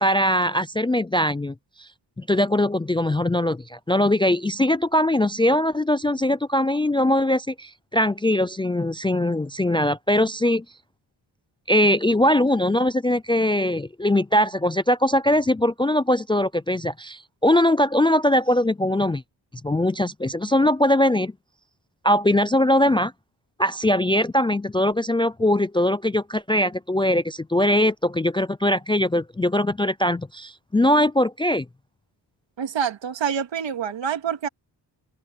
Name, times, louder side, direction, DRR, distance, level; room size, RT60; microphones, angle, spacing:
voice 1, 0.0-1.9 2.2-10.6 11.7-19.2 19.6-21.3 22.0-23.1 23.6-31.6, left 1 dB, 10° left, 0.3 m, -21 dB
voice 2, 32.6-34.5, right 8 dB, 80° right, 2.3 m, -26 dB
wide cardioid pair, 135°, 44 cm